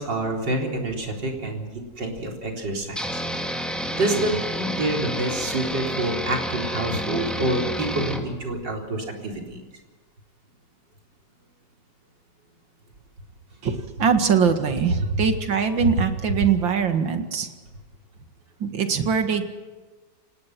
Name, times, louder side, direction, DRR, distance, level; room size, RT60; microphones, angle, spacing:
voice 1, 0.0-3.2 4.0-9.6 15.8-15.9, right 2 dB, 70° right, 1 dB, 4.6 m, -27 dB
sound 1, 3.0-8.2, equal, ahead, 2.1 m, -30 dB
voice 2, 13.6-17.5 18.6-19.4, right 6 dB, 85° right, 7 dB, 2.6 m, -22 dB
28.0 x 19.0 x 6.1 m, 1.3 s
omnidirectional pair, 2.0 m